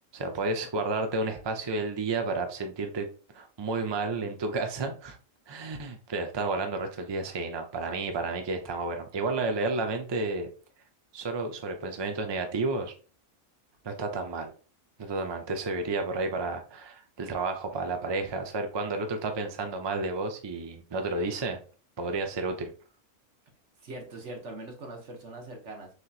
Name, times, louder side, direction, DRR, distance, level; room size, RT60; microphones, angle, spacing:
voice 1, 0.1-3.1 3.3-5.2 5.5-10.5 11.1-12.9 13.8-14.5 15.0-21.6 22.0-22.7, right 3 dB, 30° right, 5 dB, 0.5 m, -31 dB
voice 2, 23.8-25.9, right 2 dB, 65° right, 2 dB, 1.5 m, -41 dB
6.3 x 3.0 x 2.4 m, 0.38 s
omnidirectional pair, 1.3 m